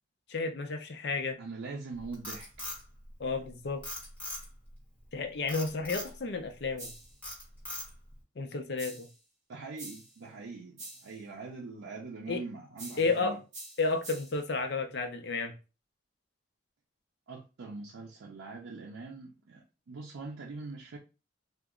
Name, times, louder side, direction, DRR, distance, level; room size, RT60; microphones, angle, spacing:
voice 1, 0.3-1.4 3.2-3.8 5.1-6.9 8.4-9.1 12.3-12.4 13.0-13.4 13.8-15.5, left 3 dB, 55° left, 0.5 m, -32 dB
voice 2, 1.4-2.7 9.5-13.4 17.3-21.0, right 3 dB, 90° right, 0.5 m, -43 dB
Frog, 1.9-3.5 3.8-4.7 5.5-6.1 6.6-6.9 7.2-8.1, left 1 dB, 5° left, 1.3 m, -40 dB
sound 1, 6.8-7.2 8.8-9.2 9.8-10.2 10.8-11.2 12.8-13.2 13.5-14.4, right 2 dB, 40° right, 1.1 m, -46 dB
2.8 x 2.2 x 3.6 m
head